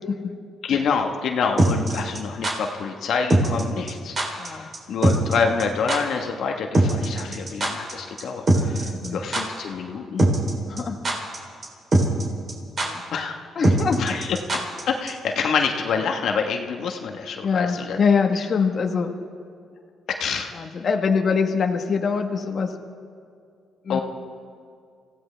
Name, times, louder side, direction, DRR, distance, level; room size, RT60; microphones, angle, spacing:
voice 1, 0.6-10.3 13.1-13.4 14.0-14.6 14.9-18.0 20.1-20.5 23.9-24.0, left 5 dB, 70° left, 3 dB, 1.2 m, -27 dB
sound 1, 1.6-2.5 3.3-3.6 3.9-4.0 4.2-4.5 4.7-4.8 5.0-5.3 5.6-5.7 5.9-6.0 6.7-7.9 8.2-8.3 8.5-9.1 9.3-9.4 10.2-10.5 10.8-11.4 11.6-11.7 11.9-12.2 12.5-12.6 12.8-12.9 13.6-14.8 15.1-15.2, right 1 dB, 40° right, 3.4 m, -20 dB
voice 2, 4.4-4.7 7.2-7.3 8.8-9.2 10.7-11.0 12.8-13.0 13.5-14.0 17.4-19.1 20.5-22.7 23.8-24.0, left 5 dB, 50° left, 4 dB, 1.2 m, -24 dB
25.5 x 16.0 x 3.4 m, 2.3 s
cardioid pair, 90°, 0 cm